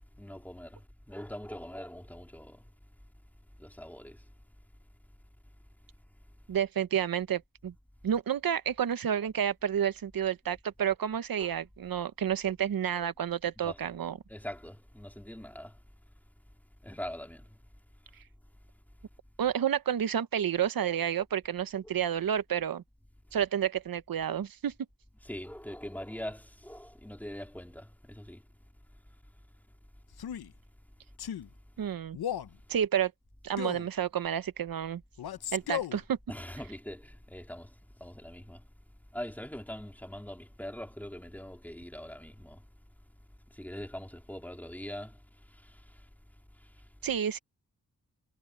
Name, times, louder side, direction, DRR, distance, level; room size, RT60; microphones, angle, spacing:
voice 1, 0.2-0.8 1.1-2.6 3.6-4.2 11.4-11.5 13.6-13.8 14.3-15.7 16.8-17.4 25.2-28.4 36.3-37.7 38.0-38.6 39.1-42.6 43.5-45.2 45.6-45.8, equal, 5° left, 3.1 m, -42 dB
voice 2, 6.5-7.7 8.0-14.2 19.4-22.8 23.3-24.7 31.8-32.2 32.7-33.1 33.4-35.0 35.5-36.2 47.0-47.4, right 9 dB, 70° right, 1.0 m, -30 dB
Male speech man speaking, 30.1-30.5 31.2-31.5 32.1-32.5 33.6-33.9 35.2-36.0, left 10 dB, 90° left, 0.8 m, -35 dB
wide cardioid pair, 140°, 36 cm